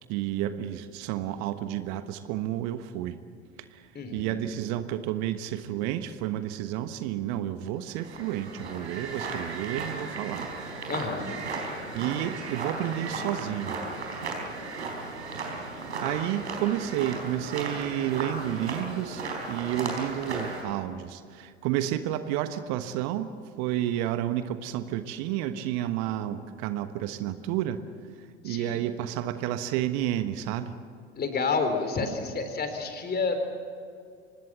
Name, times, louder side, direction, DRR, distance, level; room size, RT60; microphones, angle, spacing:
voice 1, 0.1-3.2 3.7-3.8 4.1-10.5 11.9-13.7 16.0-27.8 28.4-30.7, right 12 dB, 55° right, 11 dB, 1.3 m, -31 dB
voice 2, 3.9-4.5 10.9-11.4 28.4-28.8 31.1-33.4, left 4 dB, 30° left, 7 dB, 3.9 m, -30 dB
sound 1, 7.9-20.6, right 3 dB, 80° right, 4.3 m, -35 dB
25.0 x 19.5 x 7.5 m, 2.3 s
figure-of-eight pair, 70°, 33 cm